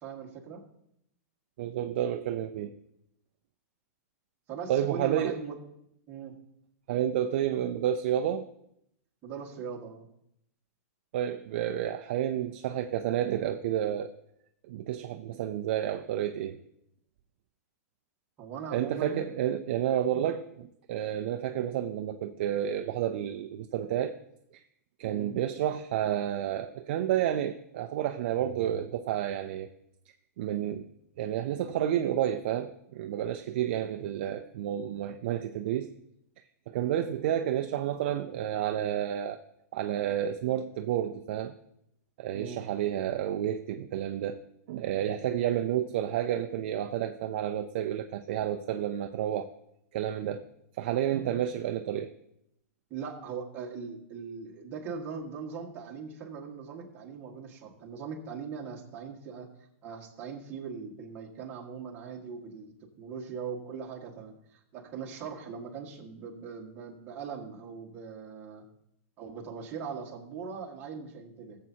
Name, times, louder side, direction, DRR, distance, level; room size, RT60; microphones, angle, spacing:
voice 1, 0.0-0.6 4.5-5.6 6.1-6.3 9.2-10.1 18.4-19.2 20.2-20.3 21.4-21.6 25.0-25.3 42.3-42.6 45.2-45.5 52.9-59.5 59.8-68.6 69.2-71.6, right 6 dB, 20° right, -2 dB, 1.6 m, -40 dB
voice 2, 1.6-2.7 4.7-5.4 6.9-8.5 11.1-14.1 14.7-16.6 18.7-24.2 24.5-24.6 25.0-29.7 30.4-30.8 31.2-35.9 36.7-39.4 39.7-41.5 42.2-44.4 44.7-49.5 49.9-50.5 50.8-52.1, right 11 dB, 45° right, 6 dB, 0.5 m, -30 dB
18.0 x 7.4 x 2.8 m, 0.76 s
supercardioid pair, 170°, 8 cm